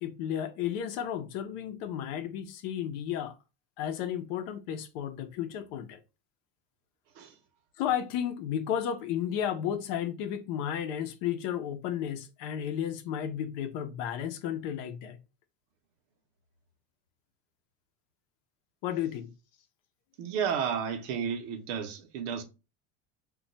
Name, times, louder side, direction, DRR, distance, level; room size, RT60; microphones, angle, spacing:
voice 1, 0.0-3.3 3.8-6.0 7.8-15.2 18.8-19.3, left 9 dB, 65° left, 0.7 m, -33 dB
voice 2, 20.2-22.4, right 7 dB, 85° right, 0.8 m, -32 dB
2.3 x 2.2 x 3.9 m
cardioid pair, 160°, 34 cm